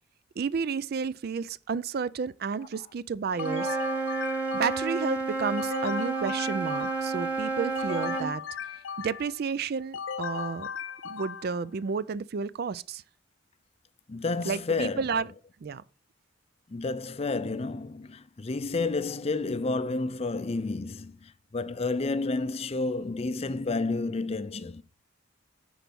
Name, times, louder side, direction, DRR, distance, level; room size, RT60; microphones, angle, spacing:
voice 1, 0.4-3.8 4.5-8.4 9.0-10.7 11.0-13.0 14.5-15.3 15.6-15.8, right 5 dB, 50° right, 0.4 m, -31 dB
Wind instrument woodwind instrument, 3.3-8.3, right 4 dB, 5° right, 1.1 m, -31 dB
sound 1, 3.4-5.0 5.6-7.3 7.7-9.4 9.9-11.6, left 7 dB, 80° left, 0.5 m, -37 dB
voice 2, 14.1-15.0 16.7-24.8, left 3 dB, 30° left, 0.5 m, -30 dB
10.0 x 4.6 x 5.2 m
head